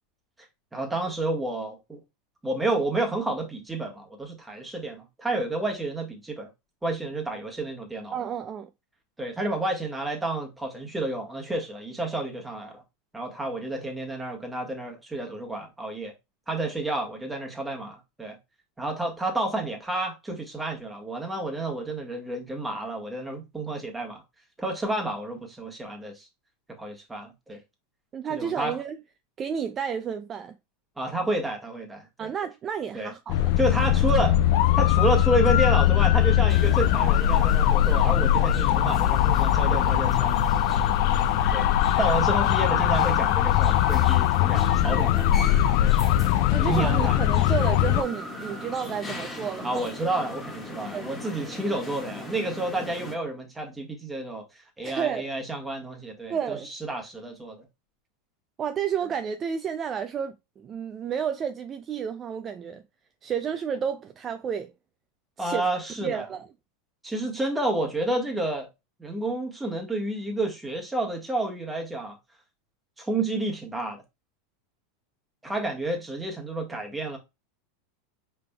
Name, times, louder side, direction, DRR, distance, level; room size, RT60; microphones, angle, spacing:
voice 1, 0.7-2.0 2.4-6.5 6.8-8.2 9.2-12.8 13.1-16.1 16.5-18.4 18.8-24.2 24.6-26.3 26.8-27.6 28.3-28.8 31.0-32.3 32.9-33.1 33.6-34.4 34.8-40.4 41.5-41.7 42.0-45.3 45.8-46.0 46.6-47.2 49.6-57.6 65.4-66.3 67.0-68.7 69.0-72.2 73.0-74.0 75.4-77.2, right 2 dB, 10° right, 1.4 m, -30 dB
voice 2, 8.1-8.7 28.1-29.0 29.4-30.5 32.2-33.5 40.7-40.8 46.5-49.9 50.9-51.1 54.8-55.3 56.3-56.7 58.6-62.8 63.2-64.7 65.4-65.7 66.0-66.5, right 7 dB, 30° right, 0.3 m, -31 dB
sound 1, 33.3-48.0, left 12 dB, 60° left, 0.3 m, -21 dB
sound 2, 36.5-53.1, left 2 dB, 15° left, 1.5 m, -38 dB
4.9 x 3.3 x 2.2 m
hypercardioid pair, 100°, 0 cm